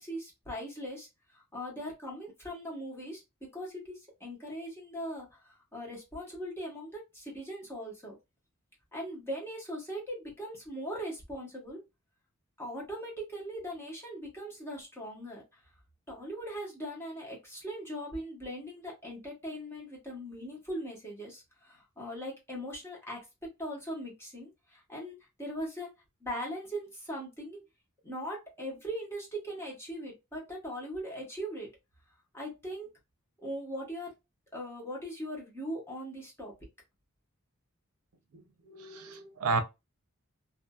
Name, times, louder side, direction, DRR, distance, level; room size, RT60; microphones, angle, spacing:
voice 1, 0.0-8.1 8.9-11.8 12.6-15.6 16.1-23.2 23.6-25.9 26.2-27.6 28.0-31.7 32.3-32.9 33.4-34.1 34.5-36.5, equal, 10° left, 1.1 m, -40 dB
voice 2, 38.7-39.6, right 3 dB, 90° right, 0.5 m, -31 dB
2.5 x 2.5 x 2.2 m
head